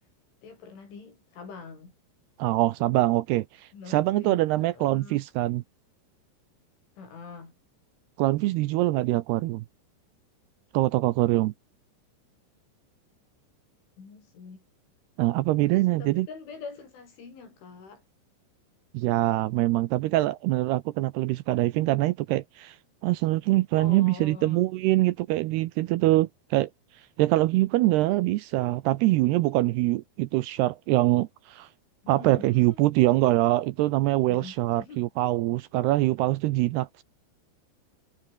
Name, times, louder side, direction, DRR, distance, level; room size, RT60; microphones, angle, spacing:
voice 1, 0.4-2.0 3.7-5.2 7.0-7.5 14.0-14.7 15.7-18.0 23.8-24.7 32.2-32.8 34.3-35.0, left 5 dB, 90° left, 10.0 m, -44 dB
voice 2, 2.4-5.6 8.2-9.6 10.7-11.5 15.2-16.3 18.9-22.8 23.0-26.7 27.2-31.7 32.1-37.0, right 17 dB, 80° right, 2.5 m, -24 dB
omnidirectional pair, 5.3 m